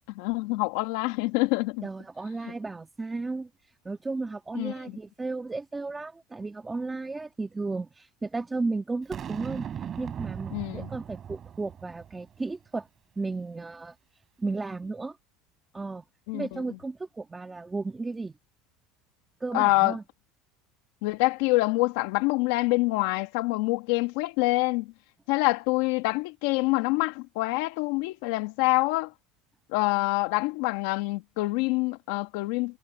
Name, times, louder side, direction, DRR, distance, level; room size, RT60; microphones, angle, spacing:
voice 1, 0.1-1.9 4.5-5.0 10.5-10.9 16.3-16.6 19.5-20.0 21.0-24.9 25.3-29.1 29.7-32.8, left 23 dB, 75° left, 1.4 m, -26 dB
voice 2, 1.8-9.7 10.0-12.9 13.2-14.0 14.4-15.2 15.7-16.0 16.3-18.4 19.4-20.0, right 3 dB, 10° right, 2.0 m, -34 dB
Boom, 9.1-12.4, right 8 dB, 30° right, 4.2 m, -38 dB
cardioid pair, 155°, 0 cm